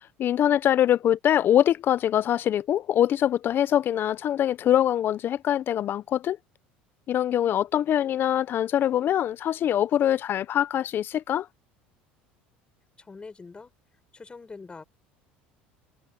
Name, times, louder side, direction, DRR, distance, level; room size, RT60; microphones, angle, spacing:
voice 1, 0.2-6.4 7.1-11.5, left 11 dB, 50° left, 0.8 m, -23 dB
voice 2, 13.0-13.7 14.1-14.8, left 4 dB, 20° left, 4.3 m, -43 dB
supercardioid pair, 85°, 5 cm